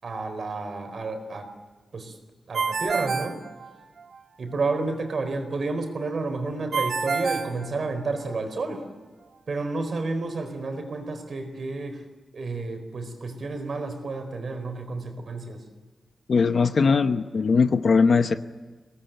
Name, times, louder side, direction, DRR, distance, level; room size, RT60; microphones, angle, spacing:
voice 1, 0.0-1.5 1.9-2.2 2.5-3.4 4.4-8.8 9.5-12.0 12.3-15.7, right 3 dB, 55° right, 6 dB, 4.4 m, -30 dB
Ringtone, 2.5-4.2 6.7-8.3, right 5 dB, 80° right, 2.0 m, -28 dB
voice 2, 16.3-18.3, left 5 dB, 55° left, 9 dB, 1.0 m, -20 dB
24.5 x 19.0 x 9.2 m, 1.3 s
wide cardioid pair, 150°, 0 cm